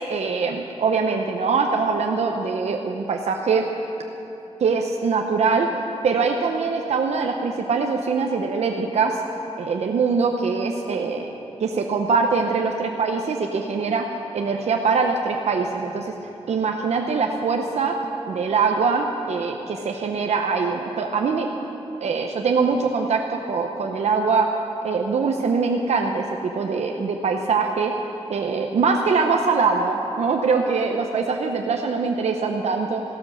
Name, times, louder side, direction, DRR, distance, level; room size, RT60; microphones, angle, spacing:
voice 1, 0.1-3.7 4.6-5.7 6.0-9.2 9.6-11.3 11.6-14.1 14.3-16.1 16.5-18.0 18.3-21.5 22.0-24.5 24.8-27.9 28.3-33.0, right 4 dB, 80° right, 2 dB, 0.8 m, -23 dB
15.0 x 12.0 x 6.4 m, 2.9 s
wide cardioid pair, 150°, 11 cm